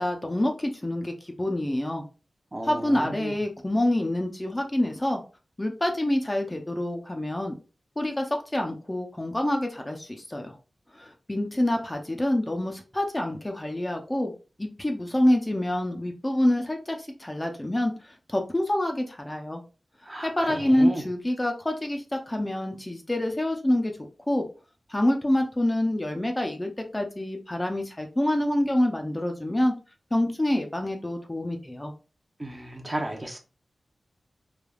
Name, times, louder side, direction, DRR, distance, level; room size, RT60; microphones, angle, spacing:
voice 1, 0.0-2.0 2.6-5.2 5.6-7.5 8.0-10.6 10.9-14.3 14.6-19.6 20.2-23.9 24.3-24.5 24.9-29.7 30.1-31.9, left 1 dB, 20° left, 0.5 m, -26 dB
voice 2, 2.5-3.3 20.1-21.0 32.4-33.4, right 1 dB, 30° right, 0.7 m, -34 dB
3.3 x 2.3 x 2.3 m
cardioid pair, 60°, 0 cm